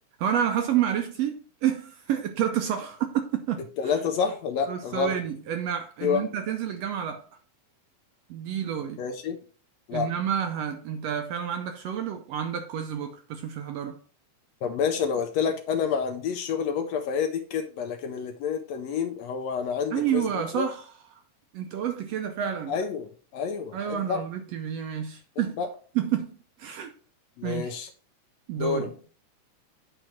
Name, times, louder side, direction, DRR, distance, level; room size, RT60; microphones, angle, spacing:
voice 1, 0.2-3.7 4.7-7.3 8.3-9.0 9.9-14.0 19.9-20.9 21.5-22.7 23.7-25.6 26.0-26.9 27.4-27.8 28.5-28.9, right 9 dB, 75° right, 1.6 m, -29 dB
voice 2, 3.8-5.2 6.0-6.3 9.0-9.4 9.9-10.1 14.6-20.3 20.5-20.7 22.7-24.2 25.6-25.7 27.4-27.9 28.6-28.9, left 6 dB, 75° left, 1.8 m, -28 dB
9.1 x 3.2 x 5.7 m
omnidirectional pair, 3.4 m